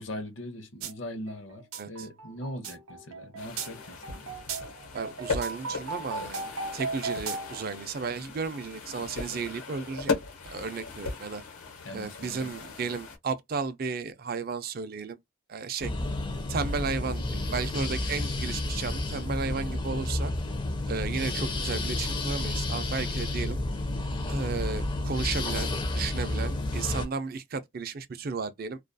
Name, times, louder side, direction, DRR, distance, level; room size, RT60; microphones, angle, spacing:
voice 1, 0.0-4.3 11.8-13.0, left 1 dB, 60° left, 0.7 m, -41 dB
sound 1, 0.8-0.9 1.3-7.7, right 4 dB, 85° right, 0.6 m, -36 dB
sound 2, 3.4-13.2, left 4 dB, 90° left, 1.0 m, -37 dB
voice 2, 4.9-6.4 6.7-10.1 10.5-11.4 11.9-15.2 15.5-15.9 16.5-20.3 20.9-23.6 24.3-28.8, right 5 dB, 45° right, 0.4 m, -34 dB
sound 3, 15.8-27.0, left 2 dB, 20° left, 0.4 m, -31 dB
2.3 x 2.2 x 2.5 m
head